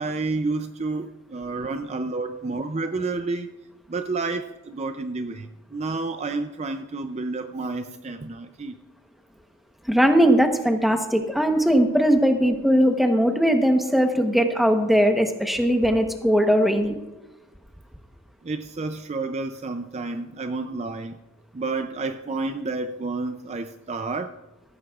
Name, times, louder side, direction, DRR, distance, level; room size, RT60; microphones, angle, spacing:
voice 1, 0.0-3.5 3.9-8.8 18.4-21.2 21.5-24.4, right 3 dB, 30° right, 8 dB, 0.4 m, -30 dB
voice 2, 9.9-17.0, equal, ahead, 5 dB, 0.9 m, -19 dB
15.5 x 15.0 x 2.4 m, 1.1 s
head